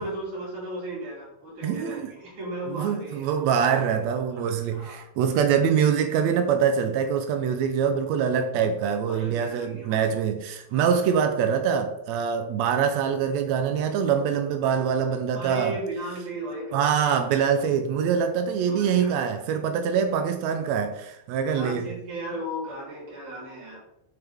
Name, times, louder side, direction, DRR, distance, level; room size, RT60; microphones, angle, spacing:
voice 1, 0.0-3.5 4.3-5.0 9.1-10.1 10.7-10.9 15.3-17.1 18.7-19.2 21.5-23.8, right 1 dB, 55° right, 5.4 m, -36 dB
voice 2, 1.6-2.1 2.7-15.7 16.7-21.9, right 7 dB, 85° right, 1.5 m, -24 dB
9.6 x 7.1 x 3.6 m
omnidirectional pair, 4.1 m